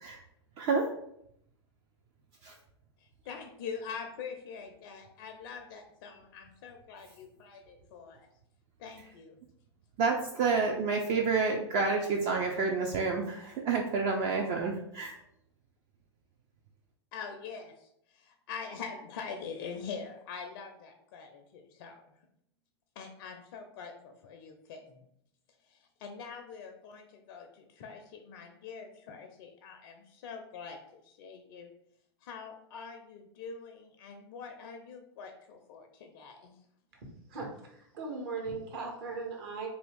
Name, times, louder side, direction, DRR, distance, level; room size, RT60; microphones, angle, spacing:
voice 1, 3.3-8.3 8.8-9.4 17.1-17.9 18.1-22.0 23.0-25.0 25.7-31.7 32.2-36.5, left 6 dB, 50° left, 0.4 m, -44 dB
voice 2, 10.0-15.1, right 4 dB, 35° right, 0.4 m, -29 dB
voice 3, 37.0-39.7, right 4 dB, 55° right, 1.0 m, -39 dB
2.6 x 2.3 x 3.5 m
figure-of-eight pair, 95°, 15 cm